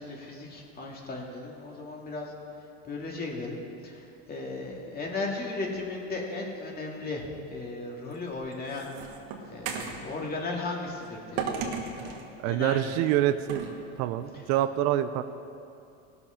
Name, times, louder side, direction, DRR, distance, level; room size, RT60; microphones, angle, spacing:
voice 1, 0.0-2.3 2.8-3.6 3.8-8.9 9.5-11.7 12.0-12.9, left 3 dB, 30° left, 0 dB, 2.2 m, -36 dB
sound 1, 8.1-10.0 11.4-12.3 13.5-13.7, right 6 dB, 85° right, 1.6 m, -34 dB
voice 2, 12.4-13.7 14.0-15.2, right 13 dB, 60° right, 12 dB, 0.5 m, -26 dB
17.0 x 6.8 x 5.7 m, 2.7 s
supercardioid pair, 120°, 31 cm